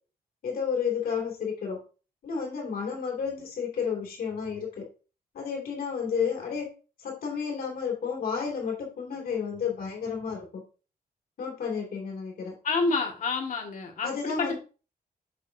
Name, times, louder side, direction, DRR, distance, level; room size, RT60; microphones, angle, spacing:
voice 1, 0.4-1.8 2.2-4.8 5.3-6.7 7.0-10.6 11.4-12.5 14.0-14.6, left 6 dB, 70° left, 0 dB, 2.7 m, -31 dB
voice 2, 12.6-14.5, left 4 dB, 55° left, 2 dB, 2.0 m, -28 dB
7.2 x 6.8 x 2.8 m, 0.35 s
wide cardioid pair, 150°, 16 cm